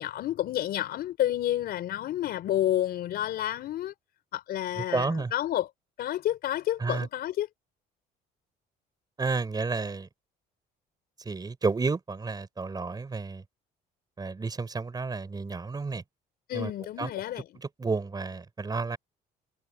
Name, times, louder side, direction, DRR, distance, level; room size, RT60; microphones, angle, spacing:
voice 1, 0.0-3.9 4.3-5.7 6.0-7.5 16.5-17.4, left 12 dB, 65° left, 4.6 m, -30 dB
voice 2, 4.8-5.3 6.8-7.1 9.2-10.1 11.2-13.4 14.2-16.0 16.5-16.7 17.0-17.1 17.5-19.0, right 4 dB, 25° right, 4.5 m, -31 dB
cardioid pair, 110°, 17 cm